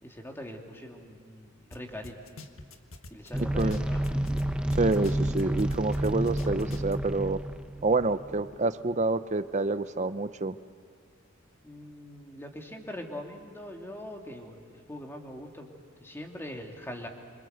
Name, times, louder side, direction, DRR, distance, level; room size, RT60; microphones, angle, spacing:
voice 1, 0.0-2.3 3.1-4.0 11.6-17.1, left 1 dB, 10° left, 2 dB, 2.6 m, -42 dB
sound 1, 1.7-1.8 2.0-4.4 4.7-6.9, left 2 dB, 85° left, 1.7 m, -45 dB
sound 2, 3.3-8.5, right 1 dB, 5° right, 0.9 m, -30 dB
voice 2, 4.8-7.4 7.8-10.6, right 3 dB, 35° right, 13 dB, 0.7 m, -27 dB
26.5 x 26.0 x 8.1 m, 2.4 s
head